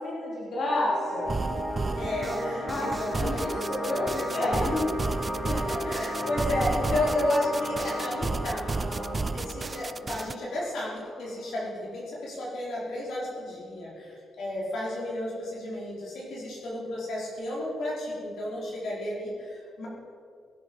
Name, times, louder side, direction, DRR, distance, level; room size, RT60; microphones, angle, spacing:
voice 1, 0.0-1.3 2.0-2.9 3.2-4.8 5.5-6.2, left 1 dB, 55° left, -7 dB, 4.0 m, -31 dB
sound 1, 0.6-11.7, equal, 15° left, 3.5 m, -35 dB
sound 2, 1.3-10.3, right 3 dB, 25° right, 0.4 m, -33 dB
voice 2, 1.9-3.6 4.1-4.6 5.5-19.9, left 1 dB, 75° left, -5 dB, 4.9 m, -32 dB
18.0 x 11.5 x 5.6 m, 2.4 s
cardioid pair, 120°, 0 cm